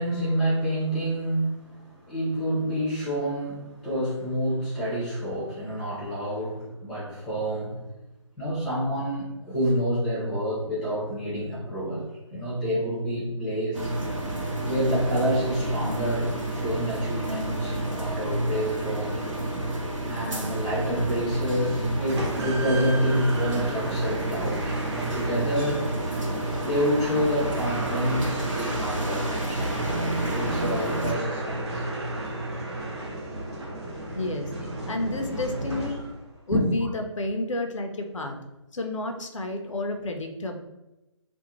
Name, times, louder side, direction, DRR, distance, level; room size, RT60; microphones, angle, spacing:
voice 1, 0.0-7.8 8.4-12.0 12.3-13.9 14.6-19.2 20.0-25.8 26.5-31.8 36.5-36.9, equal, 5° left, -8 dB, 0.5 m, -28 dB
sound 1, 13.7-31.1, right 1 dB, 85° right, 0.8 m, -30 dB
sound 2, 22.1-36.3, right 1 dB, 60° right, 0.9 m, -33 dB
voice 2, 34.1-34.5 34.8-36.0 36.5-38.4 38.7-40.6, left 2 dB, 80° left, 5 dB, 0.5 m, -30 dB
2.5 x 2.0 x 2.9 m, 0.97 s
figure-of-eight pair, 155°, 16 cm